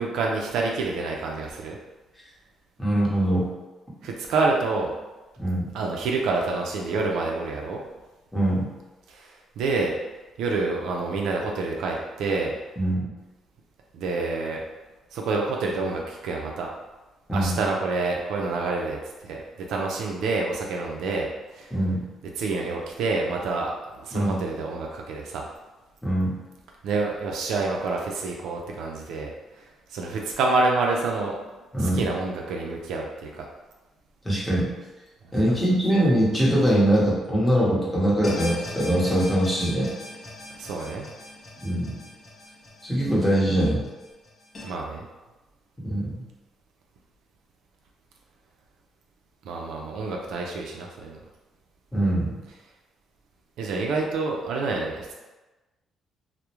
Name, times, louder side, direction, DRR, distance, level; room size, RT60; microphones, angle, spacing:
voice 1, 0.0-1.8 4.0-4.9 5.7-7.8 9.1-9.9 10.4-12.5 13.9-14.6 15.1-16.7 17.3-21.7 22.4-25.5 26.8-31.4 31.7-33.5 35.5-35.6 40.6-41.1 44.6-45.1 49.4-51.2 53.6-55.1, right 3 dB, 85° right, 0 dB, 0.3 m, -28 dB
voice 2, 2.8-3.5 5.4-5.7 8.3-8.7 12.8-13.1 17.3-17.6 21.7-22.0 24.1-24.4 26.0-26.3 31.7-32.0 34.2-34.7 35.3-39.9 41.6-42.0 42.8-43.9 45.8-46.1 51.9-52.3, right 1 dB, 5° left, -6 dB, 0.9 m, -22 dB
sound 1, 38.2-44.6, left 2 dB, 35° left, 0.5 m, -40 dB
2.3 x 2.0 x 2.9 m, 1.1 s
cardioid pair, 90°, 0 cm